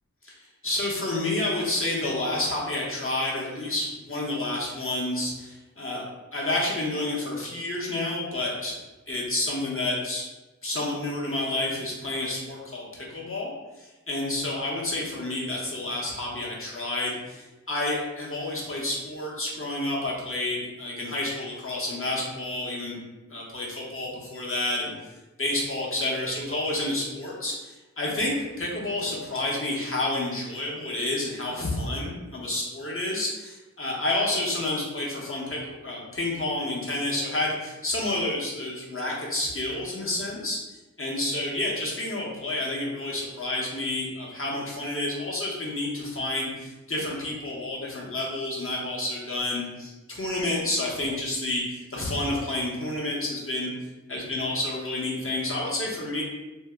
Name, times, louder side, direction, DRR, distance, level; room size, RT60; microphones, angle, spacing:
voice 1, 0.6-6.1 6.3-8.8 9.1-10.2 10.6-13.5 13.8-23.0 23.3-24.9 25.4-40.6 41.0-53.7 54.1-56.2, left 2 dB, 45° left, -4 dB, 0.8 m, -29 dB
2.7 x 2.0 x 3.4 m, 1.1 s
wide cardioid pair, 55°, 29 cm